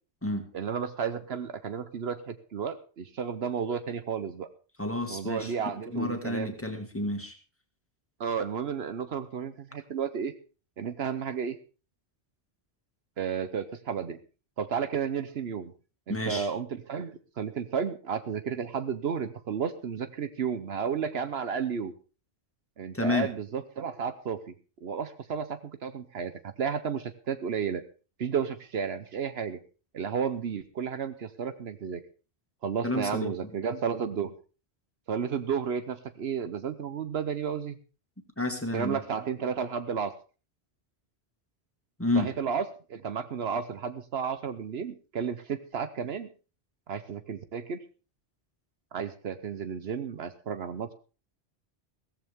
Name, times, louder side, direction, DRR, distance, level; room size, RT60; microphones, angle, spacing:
voice 1, 0.5-4.5 5.1-6.6 8.2-10.3 10.8-11.6 13.2-14.2 14.6-15.7 16.1-21.9 22.8-24.4 24.8-27.8 28.2-29.6 29.9-32.0 32.6-34.3 35.1-37.8 38.7-40.1 42.1-42.6 42.9-46.3 46.9-47.8 48.9-50.9, right 7 dB, 70° right, 11 dB, 1.1 m, -32 dB
voice 2, 4.8-5.5 5.9-7.3 16.1-16.5 22.9-23.3 32.8-33.3 38.4-39.0 42.0-42.3, left 2 dB, 10° left, 5 dB, 2.0 m, -30 dB
16.0 x 14.5 x 3.6 m, 0.35 s
omnidirectional pair, 1.1 m